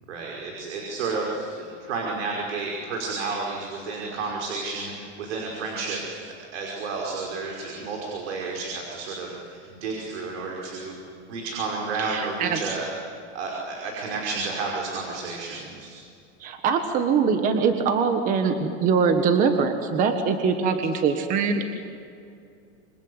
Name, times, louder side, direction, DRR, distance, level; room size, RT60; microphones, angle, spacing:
voice 1, 0.1-6.2 6.5-11.0 11.3-12.9 13.3-16.0, right 4 dB, 75° right, -1 dB, 5.6 m, -31 dB
voice 2, 12.0-12.6 16.4-21.7, right 5 dB, 20° right, 6 dB, 1.4 m, -23 dB
27.5 x 25.5 x 8.0 m, 2.5 s
supercardioid pair, 170°, 35 cm